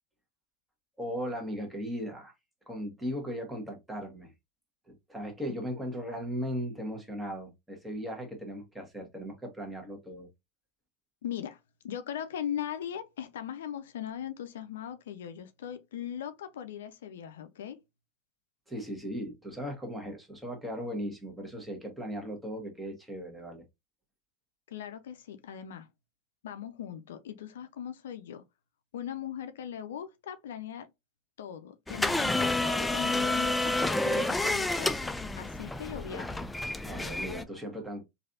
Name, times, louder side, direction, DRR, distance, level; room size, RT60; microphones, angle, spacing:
voice 1, 1.0-2.3 2.7-4.3 4.9-10.3 18.7-23.6 36.8-38.0, equal, 10° right, 1.3 m, -37 dB
voice 2, 11.2-11.6 11.8-17.8 24.7-25.9 26.4-28.4 28.9-30.9 31.4-35.1 35.4-36.5, left 9 dB, 80° left, 0.4 m, -39 dB
sound 1, 31.9-37.4, left 2 dB, 10° left, 0.3 m, -29 dB
3.2 x 2.6 x 2.6 m
hypercardioid pair, 95°, 0 cm